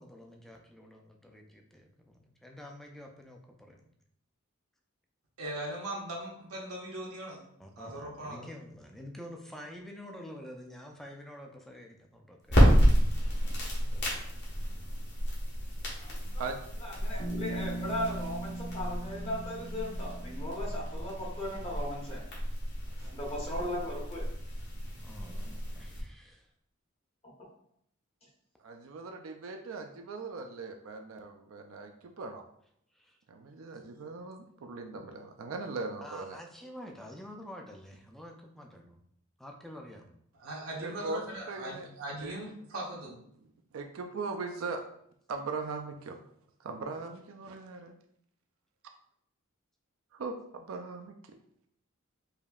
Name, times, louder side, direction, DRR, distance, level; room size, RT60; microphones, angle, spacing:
voice 1, 0.0-3.9 7.6-13.3 13.9-14.3 25.0-26.5 32.9-33.2 36.0-39.0 39.4-40.1, equal, ahead, 1 dB, 0.4 m, -48 dB
voice 2, 5.4-7.4 7.8-8.5 40.4-43.1, right 1 dB, 90° right, -3 dB, 1.0 m, -39 dB
sound 1, 12.4-26.0, equal, 55° left, 1.3 m, -30 dB
voice 3, 16.0-16.4 16.8-22.2 23.0-24.3, left 1 dB, 30° left, -3 dB, 0.9 m, -37 dB
Bass guitar, 17.2-21.3, right 1 dB, 75° left, 1.0 m, -40 dB
voice 4, 28.6-32.4 33.3-36.4 40.8-41.2 41.5-41.9 42.2-42.4 43.7-44.8 45.3-46.2 46.6-48.0 50.1-51.4, right 3 dB, 65° right, 4 dB, 0.4 m, -39 dB
4.9 x 2.7 x 2.3 m, 0.70 s
head